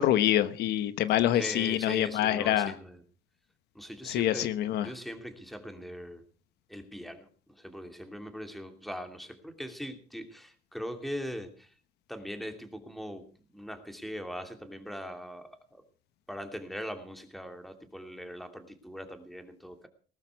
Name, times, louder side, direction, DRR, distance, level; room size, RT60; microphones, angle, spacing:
voice 1, 0.0-2.7 4.1-4.9, left 12 dB, 80° left, 1.1 m, -26 dB
voice 2, 1.3-3.0 3.7-4.5 4.8-6.2 6.7-11.7 12.1-15.8 16.3-19.9, equal, ahead, 2.7 m, -41 dB
19.5 x 12.5 x 4.7 m
cardioid pair, 110°, 17 cm